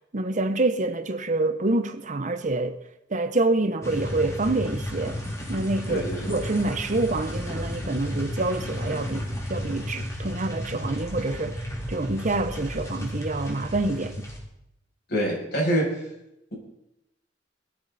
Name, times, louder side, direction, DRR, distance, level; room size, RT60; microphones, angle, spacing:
voice 1, 0.1-2.8 3.1-5.2 5.5-11.6 11.9-14.3, right 2 dB, 45° right, 1.0 m, -27 dB
sound 1, 3.8-14.4, equal, 15° left, 3.4 m, -33 dB
voice 2, 5.9-6.4 15.1-15.9, right 1 dB, 60° left, 7.5 m, -25 dB
20.5 x 13.0 x 4.2 m
head